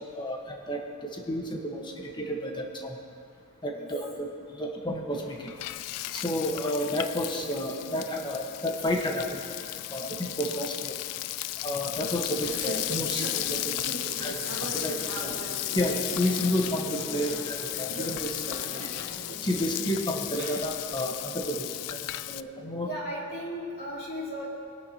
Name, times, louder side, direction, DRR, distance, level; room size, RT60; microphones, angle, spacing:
voice 1, 0.0-3.0 3.6-4.3 4.5-5.5 6.1-9.4 9.9-11.0 11.6-13.7 14.2-15.4 15.7-18.6 19.4-22.0 22.3-22.9, equal, 20° left, 1 dB, 1.3 m, -31 dB
Frying (food), 5.1-22.4, left 16 dB, 80° left, 0.3 m, -35 dB
Conversation / Chatter, 12.1-21.0, right 2 dB, 65° right, 2.5 m, -40 dB
voice 2, 22.8-24.5, equal, 40° left, -5 dB, 2.9 m, -36 dB
20.5 x 10.5 x 2.9 m, 2.3 s
head